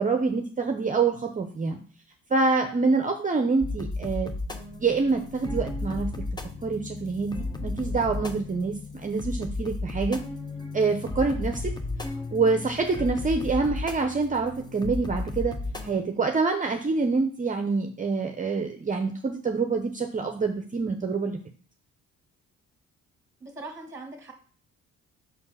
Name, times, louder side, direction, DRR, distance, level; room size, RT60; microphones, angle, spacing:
voice 1, 0.0-1.8 2.3-4.3 4.8-6.1 6.6-10.2 10.7-11.7 12.3-15.6 15.8-21.4, right 4 dB, 25° right, 4 dB, 0.8 m, -26 dB
sound 1, 3.6-16.0, left 2 dB, 15° left, 0.9 m, -34 dB
voice 2, 23.4-24.3, right 2 dB, 10° right, 4 dB, 1.9 m, -41 dB
5.4 x 4.4 x 5.8 m, 0.43 s
cardioid pair, 90°, 30 cm